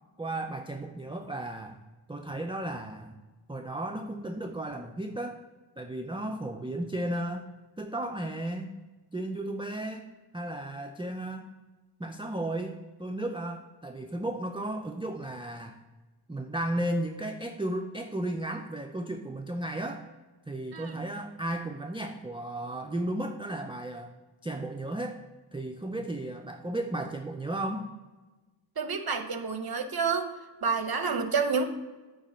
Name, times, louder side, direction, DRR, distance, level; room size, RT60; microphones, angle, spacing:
voice 1, 0.2-1.8 2.1-3.2 3.5-5.4 5.8-7.5 7.8-8.7 9.1-10.1 10.3-11.5 12.0-15.8 16.3-20.1 20.5-24.1 24.4-25.2 25.5-27.9, right 1 dB, 10° right, 4 dB, 0.4 m, -34 dB
voice 2, 28.8-30.3 30.6-31.6, right 5 dB, 50° right, 8 dB, 0.7 m, -29 dB
8.8 x 3.0 x 4.4 m, 1.2 s
wide cardioid pair, 45°, 48 cm